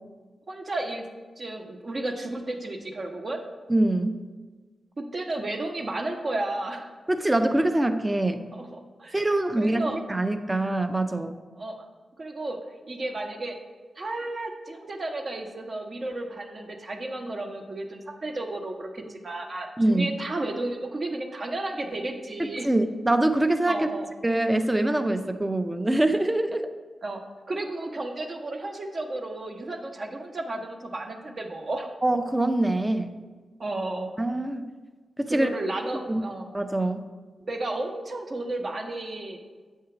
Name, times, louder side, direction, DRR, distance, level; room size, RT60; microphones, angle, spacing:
voice 1, 0.5-1.0 1.4-3.4 5.1-6.9 8.5-9.2 9.6-10.0 11.6-11.7 12.2-12.6 12.9-13.6 14.0-22.7 23.7-24.1 27.0-27.2 27.5-31.9 33.6-34.1 35.3-36.5 37.4-39.4, right 2 dB, 55° right, 3 dB, 0.9 m, -33 dB
voice 2, 3.7-4.2 7.1-8.4 9.1-11.3 19.8-20.1 22.4-23.9 24.2-26.6 32.0-33.1 34.2-34.7 35.2-35.5 36.1-36.2 36.5-37.0, right 1 dB, 20° right, 8 dB, 0.5 m, -24 dB
7.7 x 2.8 x 5.8 m, 1.4 s
supercardioid pair, 40°, 0 cm